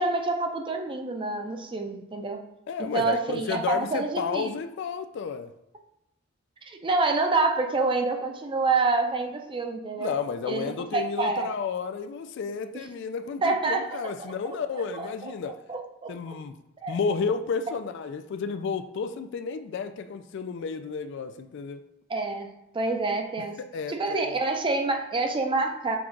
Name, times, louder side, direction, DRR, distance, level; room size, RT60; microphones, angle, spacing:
voice 1, 0.0-2.4 2.8-4.5 6.6-10.1 10.4-11.5 12.7-12.9 13.4-14.0 14.9-15.3 15.7-16.3 16.8-17.0 22.1-23.6 23.9-26.0, right 3 dB, 25° right, 4 dB, 0.5 m, -27 dB
voice 2, 2.7-5.5 10.0-15.6 16.1-16.5 16.9-21.8 23.6-24.4, left 5 dB, 60° left, 10 dB, 0.3 m, -32 dB
6.0 x 2.4 x 3.7 m, 0.85 s
head